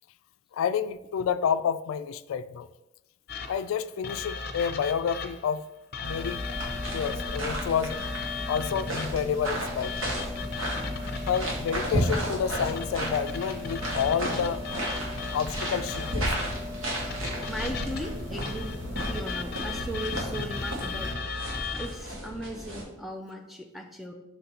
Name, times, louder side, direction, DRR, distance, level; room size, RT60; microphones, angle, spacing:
voice 1, 0.5-2.7 3.5-5.6 6.0-6.4 6.9-8.0 8.5-10.0 11.3-14.6 15.3-16.3, left 7 dB, 90° left, 13 dB, 0.3 m, -29 dB
sound 1, 3.3-5.5 5.9-9.3 9.8-11.9 12.6-16.4 17.1-22.0, left 4 dB, 50° left, 0.7 m, -37 dB
sound 2, 6.0-21.1, left 1 dB, 65° right, 1.3 m, -37 dB
sound 3, 6.8-22.8, right 1 dB, 90° right, 1.7 m, -34 dB
voice 2, 17.5-18.8 19.1-21.2 21.7-24.1, equal, ahead, 3 dB, 0.4 m, -37 dB
6.0 x 3.9 x 4.2 m, 0.96 s
head